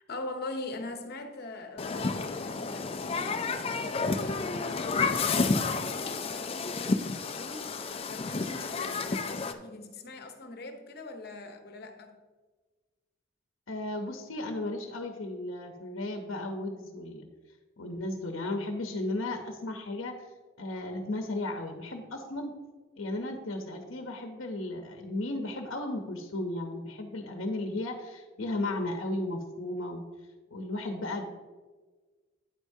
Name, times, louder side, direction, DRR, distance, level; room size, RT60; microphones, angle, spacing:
voice 1, 0.1-12.2, left 2 dB, 50° left, 0.9 m, -42 dB
Human group actions, 1.8-9.5, left 4 dB, 30° left, 0.4 m, -31 dB
voice 2, 13.7-17.3 17.8-20.1 20.6-22.5 23.0-30.0 30.5-31.3, left 2 dB, 75° left, 0.8 m, -35 dB
9.1 x 8.0 x 2.7 m
head